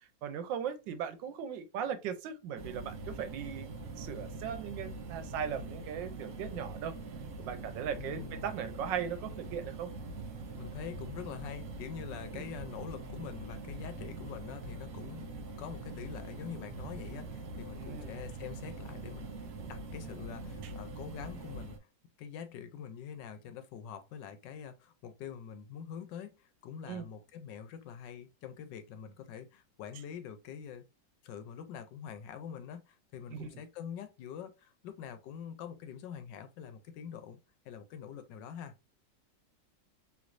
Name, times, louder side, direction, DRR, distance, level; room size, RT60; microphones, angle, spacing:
voice 1, 0.2-3.7 4.0-6.9 7.4-9.9 12.3-12.5 17.7-18.1 20.6-20.7 26.9-27.1 33.3-33.5, right 8 dB, 85° right, 1.3 m, -38 dB
sound 1, 2.6-21.8, right 3 dB, 65° right, 0.9 m, -43 dB
voice 2, 8.0-8.4 10.6-15.3 15.6-19.3 19.7-21.9 22.2-30.8 31.2-37.4 37.6-38.7, left 8 dB, 80° left, 1.3 m, -45 dB
3.2 x 3.0 x 2.4 m
omnidirectional pair, 2.0 m